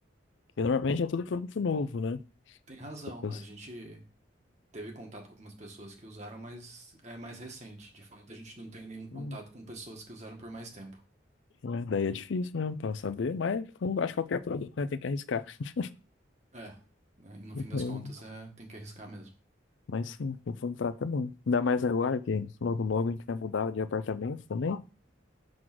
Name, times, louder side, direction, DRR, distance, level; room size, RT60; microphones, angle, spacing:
voice 1, 0.6-2.2 3.2-3.4 9.1-9.4 11.6-15.9 17.5-18.1 19.9-24.8, left 4 dB, 70° left, 0.4 m, -31 dB
voice 2, 2.7-4.0 4.7-11.0 16.5-16.8 17.2-19.3, right 1 dB, 35° right, 1.5 m, -45 dB
6.3 x 3.9 x 6.0 m
head